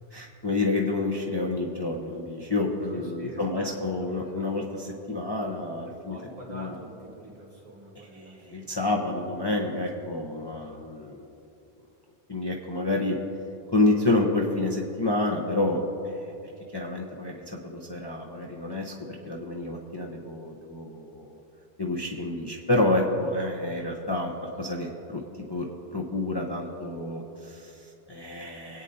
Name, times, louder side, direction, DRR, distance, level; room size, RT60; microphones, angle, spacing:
voice 1, 0.1-6.2 6.5-6.8 8.5-11.2 12.3-13.2 13.7-16.3 16.7-18.9 19.2-21.4 21.8-25.2 25.5-28.8, left 2 dB, 25° left, -1 dB, 0.8 m, -29 dB
voice 2, 2.9-4.9 6.0-8.7, right 1 dB, 40° right, -7 dB, 3.2 m, -46 dB
24.5 x 9.0 x 2.7 m, 2.8 s
omnidirectional pair, 1.1 m